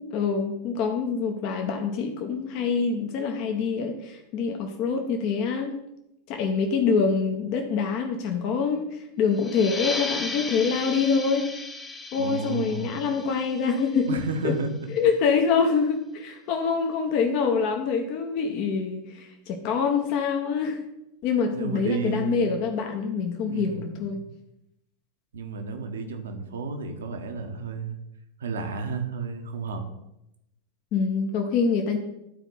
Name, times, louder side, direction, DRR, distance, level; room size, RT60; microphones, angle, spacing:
voice 1, 0.0-5.7 6.3-11.4 12.1-14.5 14.9-20.8 21.2-24.2 30.9-32.0, left 5 dB, 40° left, 4 dB, 0.9 m, -25 dB
sound 1, 9.3-14.6, left 3 dB, 15° left, 0.9 m, -36 dB
voice 2, 12.2-12.9 14.1-14.9 21.5-22.6 23.4-24.3 25.3-28.0 28.4-29.8, right 4 dB, 65° right, 5 dB, 1.1 m, -32 dB
12.0 x 4.5 x 4.0 m, 0.86 s
figure-of-eight pair, 90°, 0 cm